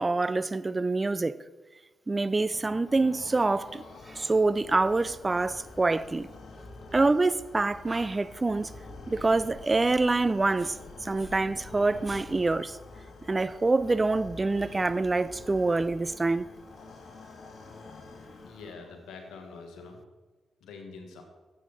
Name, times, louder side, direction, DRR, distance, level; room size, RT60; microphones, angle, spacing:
voice 1, 0.0-1.4 2.1-3.8 4.1-6.3 6.9-8.7 9.1-10.7 11.0-12.8 13.3-16.5, right 3 dB, 30° right, 0.5 m, -26 dB
sound 1, 2.1-19.1, left 3 dB, 55° left, 1.9 m, -47 dB
voice 2, 18.4-20.0 20.6-21.2, left 4 dB, 75° left, 1.7 m, -45 dB
13.0 x 8.4 x 4.1 m
hypercardioid pair, 45°, 0 cm